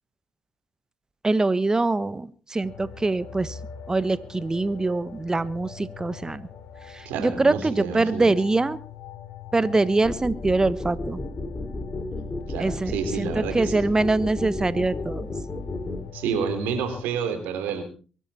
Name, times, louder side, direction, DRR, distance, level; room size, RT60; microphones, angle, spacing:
voice 1, 1.2-3.6 3.9-6.5 6.9-8.8 9.5-11.2 12.6-15.3, right 2 dB, 25° right, 16 dB, 1.3 m, -24 dB
sound 1, 2.6-17.0, left 8 dB, 65° left, 3.0 m, -43 dB
voice 2, 7.1-8.3 12.5-13.8 16.1-17.8, right 6 dB, 75° right, 8 dB, 3.5 m, -29 dB
sound 2, 10.0-16.0, left 2 dB, 30° left, 5.4 m, -32 dB
23.5 x 12.0 x 4.3 m, 0.38 s
hypercardioid pair, 50°, 3 cm